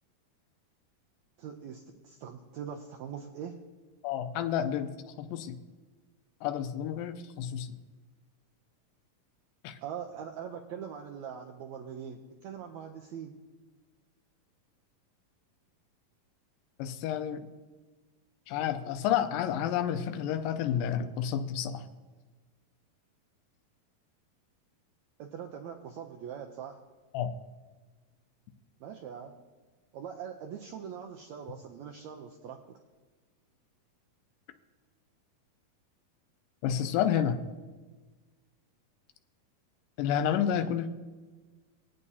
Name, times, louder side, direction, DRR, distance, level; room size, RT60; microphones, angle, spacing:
voice 1, 1.4-3.5 9.8-13.3 25.2-26.8 28.8-29.3 29.9-32.8, right 8 dB, 90° right, 2 dB, 1.6 m, -42 dB
voice 2, 4.0-4.9 5.2-5.6 6.4-7.7 9.6-9.8 16.8-17.4 18.5-21.8 27.1-27.3 36.6-37.4 40.0-40.9, left 9 dB, 85° left, 7 dB, 2.3 m, -30 dB
21.0 x 8.7 x 2.8 m, 1.3 s
omnidirectional pair, 4.0 m